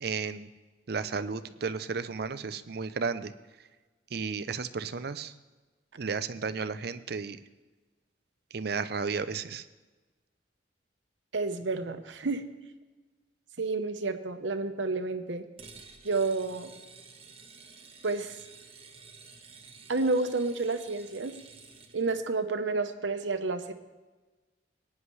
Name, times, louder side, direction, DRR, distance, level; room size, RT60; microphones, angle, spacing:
voice 1, 0.0-0.5 0.9-3.3 4.1-5.3 6.0-7.4 8.5-9.6, right 5 dB, 60° right, 12 dB, 0.5 m, -33 dB
voice 2, 11.3-12.5 13.6-15.4 16.0-16.7 18.0-18.4 19.9-21.3 21.9-23.7, right 3 dB, 90° right, 8 dB, 0.9 m, -30 dB
sound 1, 15.6-22.2, right 5 dB, 30° right, 1.1 m, -51 dB
18.0 x 9.8 x 3.2 m, 1.2 s
head